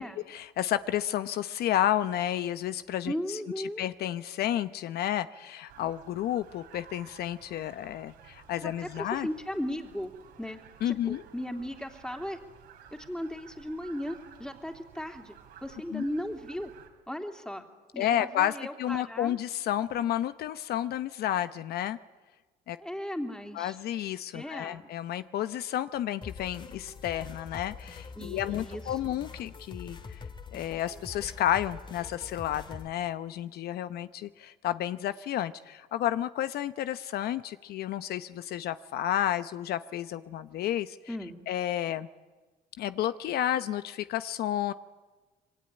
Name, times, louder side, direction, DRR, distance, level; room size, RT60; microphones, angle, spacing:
voice 1, 0.0-3.4 3.8-9.3 10.8-11.2 15.9-16.0 18.0-22.0 22.7-22.8 23.5-30.2 30.5-41.0 41.5-42.1 42.8-44.7, left 11 dB, 70° left, 12 dB, 0.8 m, -31 dB
voice 2, 3.0-3.8 8.6-10.1 10.4-10.6 10.8-12.4 13.1-15.3 15.6-16.7 17.1-17.7 17.9-19.4 22.8-23.8 24.3-24.9 28.1-29.2 41.1-41.4, equal, 5° left, 4 dB, 3.0 m, -36 dB
sound 1, 5.7-16.9, right 8 dB, 85° right, 4.6 m, -54 dB
sound 2, 26.2-32.9, left 5 dB, 30° left, 2.1 m, -44 dB
26.0 x 23.0 x 9.9 m, 1.3 s
cardioid pair, 110°, 17 cm